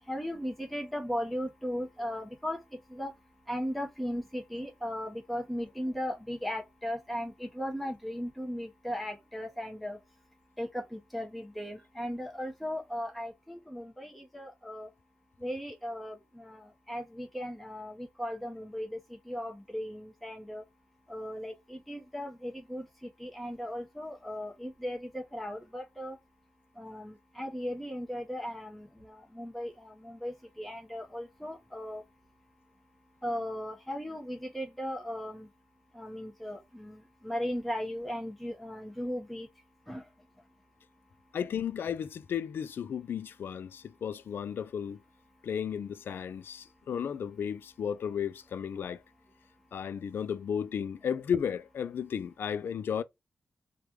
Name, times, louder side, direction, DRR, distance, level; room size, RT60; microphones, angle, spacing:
voice 1, 0.1-2.6 2.9-3.1 3.5-10.0 10.6-14.9 15.4-19.0 19.3-20.6 21.1-22.9 23.2-26.2 26.8-32.0 33.2-35.5 35.9-37.0 37.2-39.5 39.9-40.0, equal, ahead, 0.8 m, -37 dB
voice 2, 41.3-45.0 45.4-49.0 49.7-53.0, left 8 dB, 75° left, 0.3 m, -34 dB
3.3 x 2.3 x 2.9 m
cardioid pair, 85°, 4 cm